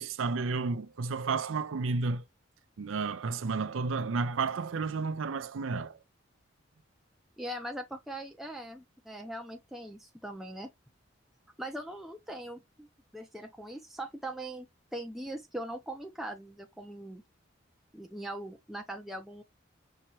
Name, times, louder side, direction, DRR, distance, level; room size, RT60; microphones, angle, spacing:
voice 1, 0.0-2.2 2.8-6.0, right 4 dB, 85° right, 0.5 m, -32 dB
voice 2, 7.4-10.7 11.6-12.9 13.1-14.7 14.9-17.2 17.9-19.4, right 1 dB, ahead, 0.6 m, -41 dB
5.5 x 2.9 x 2.9 m
head